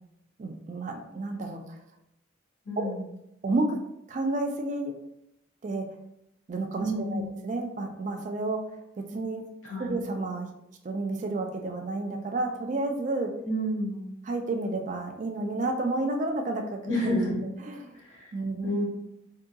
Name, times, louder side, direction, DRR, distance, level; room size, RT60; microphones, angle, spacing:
voice 1, 0.4-1.8 2.8-2.9 3.4-3.8 4.1-5.0 5.6-5.9 6.5-8.7 9.0-9.5 9.8-10.5 10.8-13.4 14.3-16.8 17.6-17.9 18.3-18.7, right 2 dB, 40° right, 4 dB, 0.3 m, -31 dB
voice 2, 2.6-3.0 6.8-7.4 9.6-9.9 13.4-14.0 16.8-17.5 17.9-18.3 18.6-18.8, equal, 80° left, -5 dB, 1.3 m, -30 dB
3.5 x 2.8 x 2.2 m, 0.82 s
head